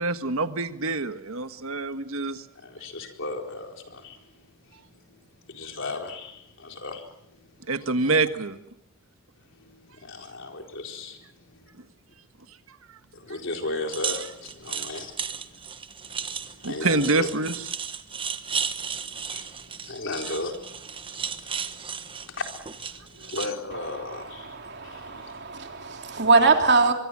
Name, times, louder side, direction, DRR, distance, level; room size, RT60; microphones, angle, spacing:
voice 1, 0.0-2.4 7.7-8.6 14.8-14.9 16.6-17.6 23.2-23.3, right 3 dB, 70° right, 1.4 m, -26 dB
voice 2, 2.3-7.7 9.4-11.7 13.1-15.6 16.0-17.3 18.7-25.3, left 2 dB, 60° left, 4.2 m, -37 dB
sound 1, 13.9-23.5, right 6 dB, 25° right, 1.2 m, -34 dB
voice 3, 23.7-26.9, right 4 dB, 50° right, 3.3 m, -23 dB
24.5 x 23.5 x 7.5 m
head